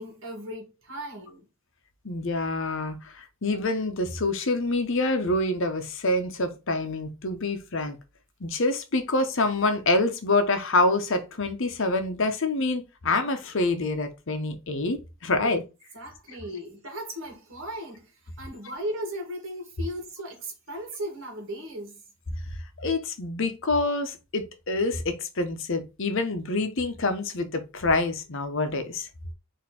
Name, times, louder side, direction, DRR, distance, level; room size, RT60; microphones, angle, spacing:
voice 1, 0.0-1.4 15.4-15.5 15.9-22.0, equal, 60° right, 1.7 m, -37 dB
voice 2, 2.0-8.0 8.4-15.6 22.8-29.1, left 2 dB, 60° left, 0.8 m, -26 dB
4.2 x 2.8 x 4.2 m
head